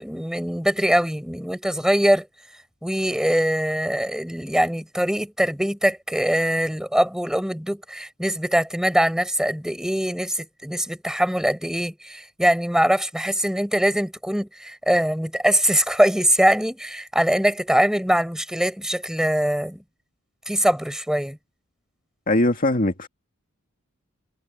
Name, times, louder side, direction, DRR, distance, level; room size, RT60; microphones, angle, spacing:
voice 1, 0.0-2.3 2.8-19.8 20.5-21.4, equal, 5° right, 5.0 m, -22 dB
voice 2, 22.3-23.1, left 1 dB, 40° left, 2.0 m, -20 dB
head